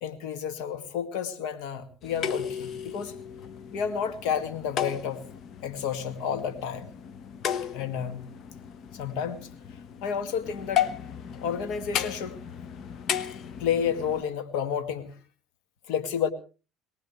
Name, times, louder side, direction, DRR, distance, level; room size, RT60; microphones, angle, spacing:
voice 1, 0.0-3.1 3.7-5.2 5.6-6.9 7.7-8.3 8.9-9.5 10.0-10.9 11.4-12.4 13.6-15.1 15.9-16.3, left 7 dB, 75° left, 10 dB, 2.0 m, -30 dB
sound 1, 2.0-14.2, left 9 dB, 50° left, 1.0 m, -35 dB
22.5 x 18.5 x 3.2 m, 0.34 s
supercardioid pair, 100°, 0 cm